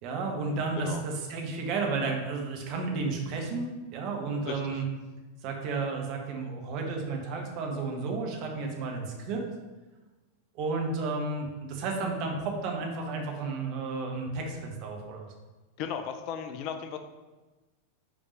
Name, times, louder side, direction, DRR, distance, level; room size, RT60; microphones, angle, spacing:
voice 1, 0.0-4.8 5.4-9.4 10.5-15.3, right 3 dB, 40° right, 1 dB, 1.4 m, -32 dB
voice 2, 4.5-4.8 15.8-17.0, left 7 dB, 40° left, 7 dB, 0.5 m, -36 dB
5.9 x 4.4 x 5.2 m, 1.2 s
figure-of-eight pair, 90°, 0 cm